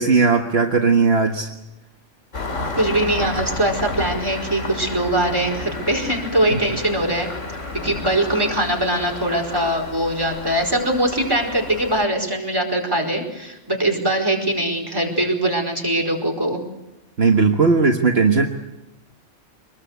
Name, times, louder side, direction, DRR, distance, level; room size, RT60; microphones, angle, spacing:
voice 1, 0.0-1.5 6.5-6.6 17.2-18.5, right 4 dB, 55° right, 2 dB, 1.7 m, -17 dB
Engine starting, 2.3-12.1, left 2 dB, 75° left, 3.3 m, -31 dB
voice 2, 2.7-7.3 7.8-16.6, right 1 dB, 20° right, 2 dB, 4.9 m, -22 dB
24.5 x 21.0 x 8.2 m, 0.95 s
omnidirectional pair, 1.3 m